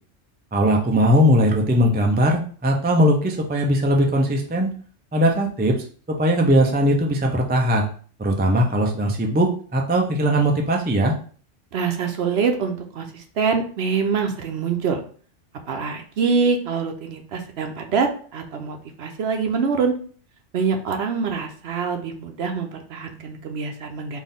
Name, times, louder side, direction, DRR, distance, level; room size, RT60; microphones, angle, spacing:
voice 1, 0.5-4.7 5.1-5.7 6.1-7.9 8.2-11.1, equal, 15° right, 1 dB, 0.3 m, -19 dB
voice 2, 11.7-15.0 15.7-19.9 20.5-24.2, right 5 dB, 65° right, 4 dB, 0.9 m, -25 dB
4.2 x 2.6 x 3.6 m, 0.43 s
omnidirectional pair, 1.3 m